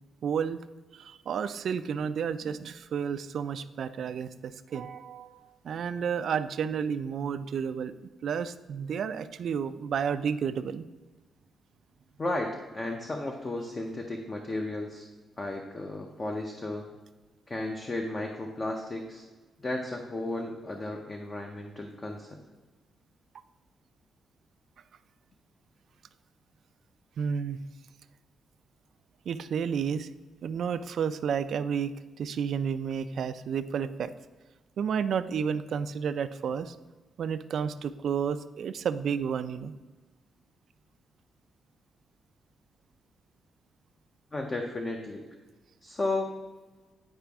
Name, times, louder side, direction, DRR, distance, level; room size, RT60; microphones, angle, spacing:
voice 1, 0.2-0.6 0.9-7.9 8.2-10.8 27.2-27.6 29.3-30.1 30.4-34.1 34.8-36.8 37.2-39.7, right 7 dB, 55° right, 12 dB, 0.3 m, -31 dB
voice 2, 12.2-15.1 15.4-16.8 17.5-19.2 19.6-22.3 44.3-45.2 45.8-46.3, left 2 dB, 25° left, 2 dB, 0.6 m, -34 dB
9.9 x 4.9 x 3.5 m, 1.2 s
wide cardioid pair, 175°, 0 cm